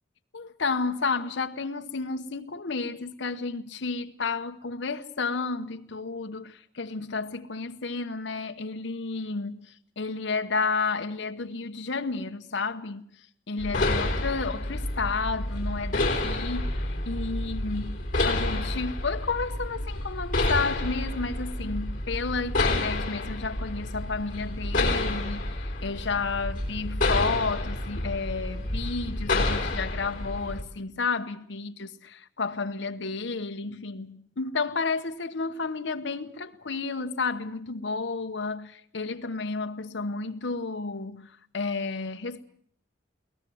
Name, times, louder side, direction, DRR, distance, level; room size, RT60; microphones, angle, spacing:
voice 1, 0.3-13.0 13.5-42.4, left 4 dB, 80° left, 0.9 m, -31 dB
sound 1, 13.6-30.6, left 2 dB, 45° left, 3.8 m, -29 dB
22.0 x 18.5 x 7.7 m
head